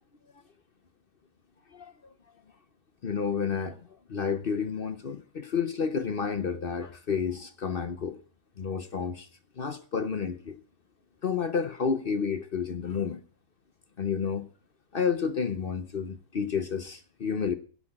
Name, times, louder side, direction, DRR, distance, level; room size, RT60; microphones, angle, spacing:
voice 1, 3.0-8.2 8.6-9.3 9.6-10.6 11.2-13.2 14.0-14.5 14.9-17.5, left 6 dB, 55° left, 0.6 m, -30 dB
16.5 x 6.0 x 8.5 m
omnidirectional pair, 2.1 m